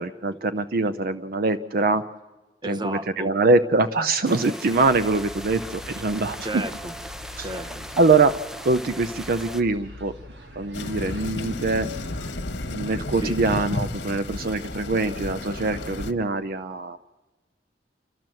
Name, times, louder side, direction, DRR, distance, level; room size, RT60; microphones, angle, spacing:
voice 1, 0.0-2.0 2.7-6.6 7.4-7.5 8.0-8.4 8.6-10.1 10.6-11.9 12.7-17.0, right 3 dB, 55° right, 11 dB, 0.6 m, -23 dB
voice 2, 2.6-3.3 6.4-6.9 7.4-7.9 13.2-13.4, right 1 dB, 25° right, 10 dB, 1.0 m, -32 dB
sound 1, 4.2-9.6, equal, 5° right, 0.6 m, -39 dB
sound 2, 4.6-12.3, left 1 dB, 75° right, 1.9 m, -43 dB
sound 3, 10.7-16.1, left 2 dB, 75° left, 1.2 m, -32 dB
29.5 x 12.0 x 7.6 m, 1.2 s
head